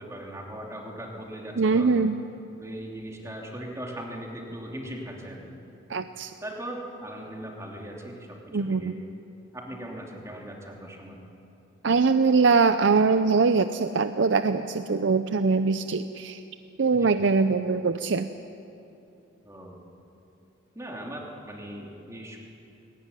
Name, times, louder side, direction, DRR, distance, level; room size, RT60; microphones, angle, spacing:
voice 1, 0.0-1.9 2.6-5.6 6.4-9.0 9.5-11.2 16.9-17.1 19.4-19.8 20.7-22.4, right 1 dB, 15° right, -1 dB, 2.9 m, -39 dB
voice 2, 1.6-2.2 5.9-6.3 8.5-9.0 11.8-16.4 16.8-18.3, right 4 dB, 70° right, 10 dB, 0.6 m, -22 dB
20.0 x 18.5 x 9.8 m, 2.9 s
head